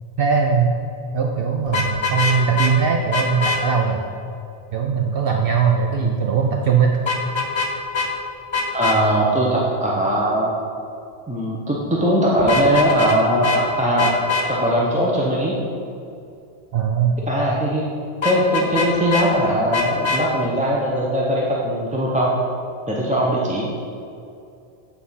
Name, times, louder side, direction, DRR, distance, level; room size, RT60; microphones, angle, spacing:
voice 1, 0.2-0.7 1.1-4.1 4.7-6.9 16.7-17.2, right 6 dB, 65° right, 1 dB, 0.8 m, -20 dB
Vehicle horn car horn honking, 1.7-2.7 3.1-3.6 7.0-7.7 7.9-8.1 8.5-9.0 12.4-13.2 13.4-13.6 14.0-14.5 18.2-19.3 19.7-20.2, left 4 dB, 30° left, 0.7 m, -22 dB
voice 2, 8.7-10.5 11.3-14.1 14.5-15.6 17.3-17.8 18.2-22.3 22.9-23.7, right 1 dB, 10° right, -4 dB, 0.6 m, -20 dB
8.3 x 3.9 x 5.6 m, 2.5 s
omnidirectional pair, 1.1 m